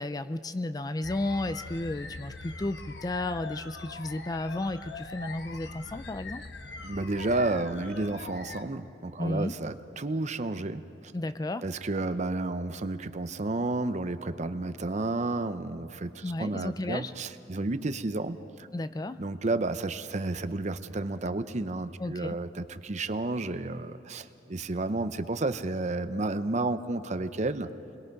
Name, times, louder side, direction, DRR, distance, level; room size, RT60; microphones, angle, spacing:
voice 1, 0.0-6.4 9.2-9.6 11.1-11.7 16.2-17.1 18.7-19.2 22.0-22.4, left 2 dB, 20° left, 12 dB, 0.4 m, -33 dB
sound 1, 1.0-8.6, left 3 dB, 80° left, 1.1 m, -42 dB
voice 2, 6.8-10.8 11.6-18.7 19.2-27.7, right 2 dB, 40° right, 11 dB, 0.7 m, -31 dB
29.0 x 21.5 x 5.4 m, 2.9 s
head